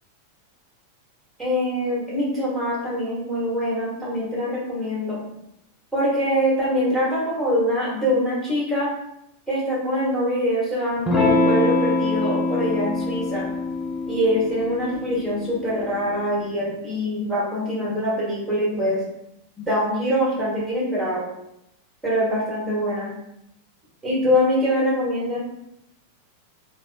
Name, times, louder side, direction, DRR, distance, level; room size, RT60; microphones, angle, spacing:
voice 1, 1.4-5.2 5.9-8.9 9.5-13.5 14.1-19.0 19.6-21.2 22.0-23.1 24.0-25.4, equal, 10° right, -7 dB, 1.5 m, -24 dB
Electric guitar / Strum, 11.1-16.2, left 2 dB, 20° left, 0.8 m, -24 dB
3.3 x 2.1 x 2.6 m, 0.80 s
figure-of-eight pair, 90°, 0 cm